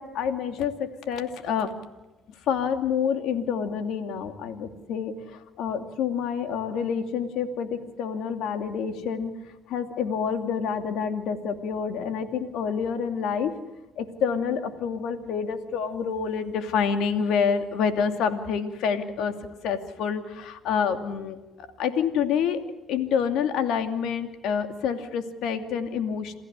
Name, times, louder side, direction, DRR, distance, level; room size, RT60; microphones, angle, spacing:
voice 1, 0.0-1.7 2.5-9.3 9.7-13.5 14.0-19.3 19.6-22.6 22.9-26.4, left 7 dB, 80° left, 8 dB, 2.5 m, -28 dB
28.0 x 15.0 x 8.2 m, 1.1 s
cardioid pair, 90°, 0 cm